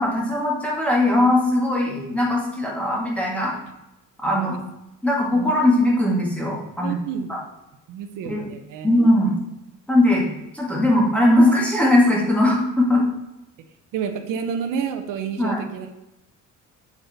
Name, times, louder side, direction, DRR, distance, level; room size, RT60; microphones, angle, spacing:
voice 1, 0.0-3.5 4.2-4.6 5.0-6.9 8.2-8.5 8.8-9.3 9.9-13.0 15.4-15.6, left 1 dB, 5° left, -3 dB, 1.9 m, -19 dB
voice 2, 4.3-4.6 5.3-5.5 6.8-7.4 7.9-8.9 12.9-13.0 13.9-15.9, right 7 dB, 75° right, 6 dB, 1.0 m, -30 dB
7.7 x 7.6 x 4.2 m, 0.93 s
cardioid pair, 170°, 32 cm